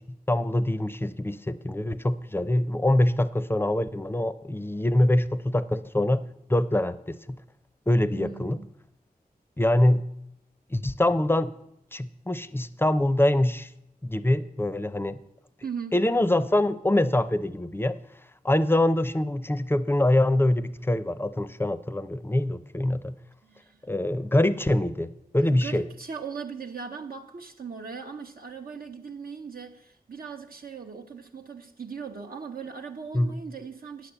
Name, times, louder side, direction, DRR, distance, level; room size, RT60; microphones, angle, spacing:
voice 1, 0.3-6.2 6.5-7.4 7.9-8.6 9.6-10.1 10.7-11.5 11.9-13.7 14.0-15.2 15.9-18.0 18.4-23.2 23.9-25.8 33.1-33.4, left 1 dB, 15° left, 0.5 m, -24 dB
voice 2, 8.1-8.7 15.6-16.0 23.4-23.8 25.4-34.1, right 6 dB, 70° right, 0.8 m, -39 dB
10.0 x 6.3 x 7.9 m
wide cardioid pair, 85°, 16 cm